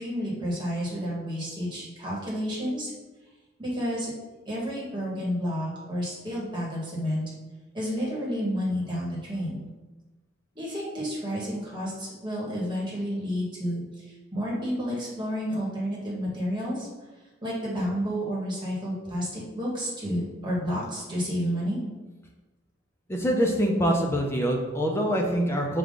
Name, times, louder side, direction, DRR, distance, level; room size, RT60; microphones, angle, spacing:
voice 1, 0.0-2.9 3.6-4.1 4.5-7.3 7.7-9.6 10.5-16.9 17.4-21.8, equal, 25° right, -5 dB, 1.2 m, -30 dB
voice 2, 23.1-25.8, equal, 10° left, 0 dB, 0.4 m, -24 dB
4.9 x 2.3 x 3.7 m, 1.2 s
head